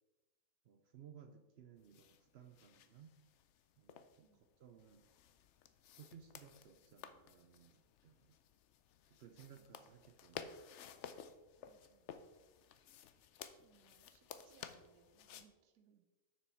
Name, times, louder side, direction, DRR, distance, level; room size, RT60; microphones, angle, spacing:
voice 1, 0.6-3.1 3.8-4.3 4.6-5.1 6.0-8.4 9.1-10.6, right 8 dB, 65° right, 6 dB, 0.6 m, -60 dB
sound 1, 1.8-15.4, left 8 dB, 65° left, 0.7 m, -55 dB
voice 2, 4.2-4.5 9.5-9.8 11.6-12.1 12.4-12.5 13.6-16.0, right 7 dB, 80° right, 7 dB, 1.2 m, -71 dB
6.9 x 6.2 x 4.5 m, 1.1 s
omnidirectional pair, 1.6 m